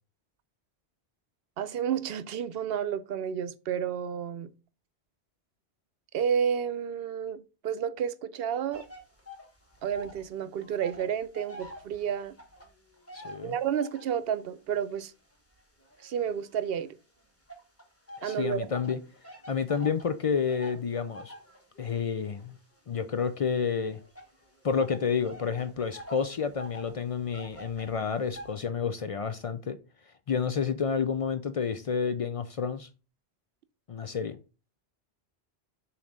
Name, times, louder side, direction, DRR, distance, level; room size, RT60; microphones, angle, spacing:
voice 1, 1.6-4.5 6.1-8.8 9.8-12.3 13.4-15.1 16.0-16.9 18.2-18.7, right 8 dB, 70° right, 0.8 m, -31 dB
sound 1, 8.7-10.3 10.5-14.2 14.8-16.9 17.5-28.5, equal, 15° left, 1.2 m, -47 dB
voice 2, 13.1-13.6 18.2-19.0 19.5-21.3 21.8-22.6 22.9-24.0 24.6-29.8 30.3-32.9 33.9-34.4, left 6 dB, 55° left, 0.3 m, -30 dB
7.1 x 3.0 x 5.1 m
omnidirectional pair, 1.1 m